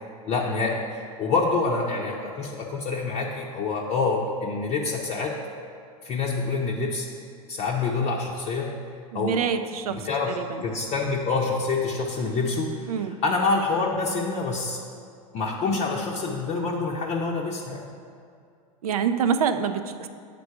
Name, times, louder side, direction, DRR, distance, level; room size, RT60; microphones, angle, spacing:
voice 1, 0.3-5.3 6.0-7.1 7.5-8.7 9.1-9.4 9.9-10.4 10.6-14.8 15.3-17.8, left 3 dB, 35° left, -3 dB, 0.7 m, -26 dB
voice 2, 9.1-10.6 12.9-13.2 18.8-20.1, right 7 dB, 85° right, 10 dB, 0.5 m, -26 dB
8.3 x 3.8 x 4.7 m, 2.3 s
hypercardioid pair, 105°, 18 cm